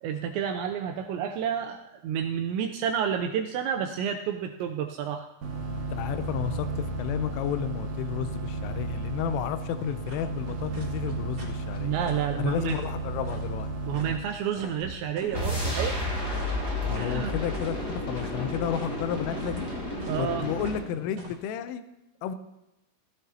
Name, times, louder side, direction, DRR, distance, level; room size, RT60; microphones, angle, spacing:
voice 1, 0.0-5.3 11.8-12.8 13.8-16.0 17.0-17.3 20.1-20.5, right 8 dB, 85° right, 5 dB, 2.6 m, -30 dB
sound 1, 5.4-14.2, right 2 dB, 65° right, 1.7 m, -33 dB
voice 2, 5.9-12.0 12.4-13.7 16.9-19.7 20.2-21.8 22.2-22.4, left 9 dB, 85° left, 10 dB, 3.2 m, -32 dB
sound 2, 9.7-21.3, right 2 dB, 35° right, 3.4 m, -47 dB
sound 3, 15.3-20.9, left 1 dB, 15° left, 4.1 m, -31 dB
17.5 x 13.5 x 2.8 m, 0.92 s
omnidirectional pair, 5.7 m